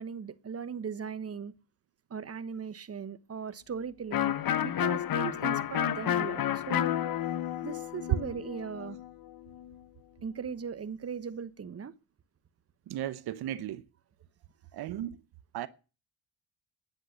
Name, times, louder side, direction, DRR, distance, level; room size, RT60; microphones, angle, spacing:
voice 1, 0.0-1.5 2.1-6.9 7.6-9.0 10.2-11.9, right 6 dB, 40° right, 1.1 m, -38 dB
Electric guitar, 4.1-9.7, left 11 dB, 65° left, 1.1 m, -31 dB
voice 2, 12.9-13.8 14.7-15.2 15.5-15.7, right 12 dB, 85° right, 0.8 m, -35 dB
10.5 x 7.6 x 9.8 m
cardioid pair, 70°, 37 cm